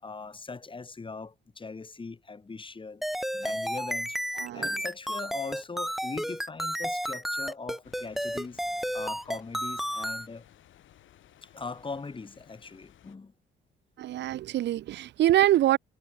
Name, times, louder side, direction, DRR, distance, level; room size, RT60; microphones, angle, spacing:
voice 1, 0.0-3.0 3.3-8.6 8.9-10.5 11.4-13.3, left 4 dB, 25° left, 2.1 m, -40 dB
sound 1, 3.0-10.3, equal, ahead, 2.4 m, -32 dB
voice 2, 4.4-4.8 14.0-15.8, right 13 dB, 60° right, 0.5 m, -24 dB
sound 2, 7.8-13.2, left 12 dB, 75° left, 4.9 m, -58 dB
cardioid pair, 90°, 20 cm